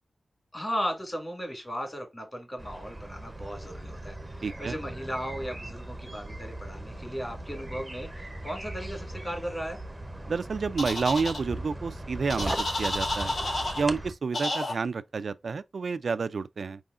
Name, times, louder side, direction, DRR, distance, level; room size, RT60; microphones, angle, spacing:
voice 1, 0.5-9.8, equal, 20° left, 2.1 m, -36 dB
sound 1, 2.6-14.1, right 1 dB, 15° right, 0.7 m, -39 dB
voice 2, 4.4-4.7 10.3-13.3 13.8-16.8, right 4 dB, 65° right, 0.4 m, -30 dB
sound 2, 10.8-11.4 12.3-13.8 14.3-14.7, left 2 dB, 85° left, 2.3 m, -30 dB
4.9 x 3.7 x 2.5 m
wide cardioid pair, 110°, 0 cm